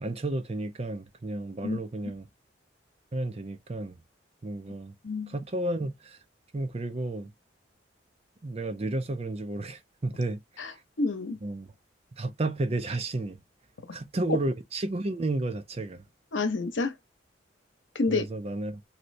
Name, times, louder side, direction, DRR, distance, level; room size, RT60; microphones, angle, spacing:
voice 1, 0.0-2.3 3.1-4.0 4.4-5.0 5.3-6.2 6.5-7.3 8.4-10.7 11.4-11.7 12.2-13.4 13.9-16.0 18.1-18.8, right 2 dB, 35° right, 0.5 m, -32 dB
voice 2, 5.0-5.3 10.6-11.4 16.3-17.0 17.9-18.3, left 3 dB, 85° left, 0.9 m, -29 dB
3.1 x 2.8 x 2.6 m
head